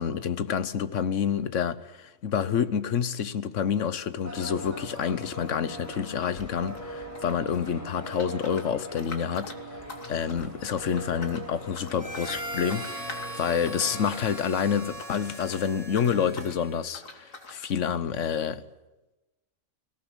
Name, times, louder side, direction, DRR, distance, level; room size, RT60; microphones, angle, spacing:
voice 1, 0.0-9.5 10.1-18.6, left 7 dB, 70° left, 1.3 m, -28 dB
sound 1, 3.8-4.0 4.3-6.8 7.1-15.6 15.9-16.6 16.9-17.6, left 3 dB, 85° left, 3.0 m, -45 dB
sound 2, 4.2-14.4, right 1 dB, 10° left, 5.2 m, -41 dB
Harmonica, 12.0-17.0, right 1 dB, 25° right, 2.3 m, -40 dB
21.0 x 17.5 x 9.9 m
omnidirectional pair, 1.3 m